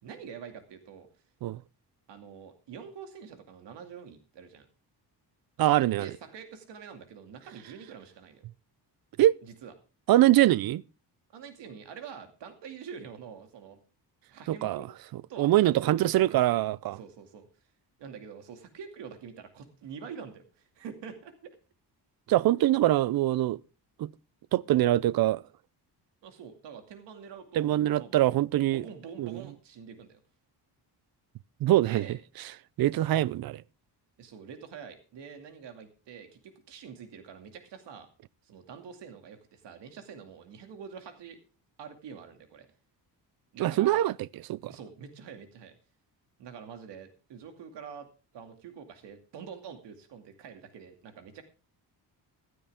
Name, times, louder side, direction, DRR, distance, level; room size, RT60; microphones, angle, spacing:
voice 1, 0.0-1.1 2.1-4.7 5.7-8.5 9.4-9.7 11.3-13.8 14.3-14.9 15.3-16.3 16.5-16.7 16.9-17.5 18.0-21.3 26.2-28.1 28.7-30.2 31.9-32.1 34.2-38.1 38.4-41.4 41.8-42.7 43.5-44.1 44.7-45.7 46.4-48.1 48.3-51.4, right 6 dB, 80° right, 2.5 m, -46 dB
voice 2, 5.6-6.1 9.2-9.4 10.1-10.8 14.5-14.9 15.1-17.0 22.3-23.6 24.0-24.1 24.5-25.4 27.6-28.9 29.2-29.4 31.6-32.0 32.8-33.6 43.6-44.7, right 14 dB, 60° right, 0.5 m, -24 dB
15.5 x 12.5 x 3.5 m
cardioid pair, 155°, 42 cm